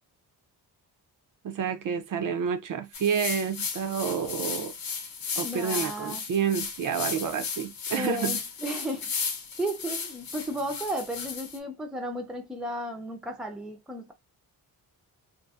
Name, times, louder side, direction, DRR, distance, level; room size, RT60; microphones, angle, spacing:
voice 1, 1.4-4.7 5.4-8.4, right 7 dB, 55° right, 0.5 m, -29 dB
sound 1, 2.9-11.6, left 5 dB, 65° left, 0.8 m, -35 dB
voice 2, 5.4-6.2 7.9-14.1, right 1 dB, ahead, 0.5 m, -34 dB
2.7 x 2.4 x 2.3 m
wide cardioid pair, 145°, 38 cm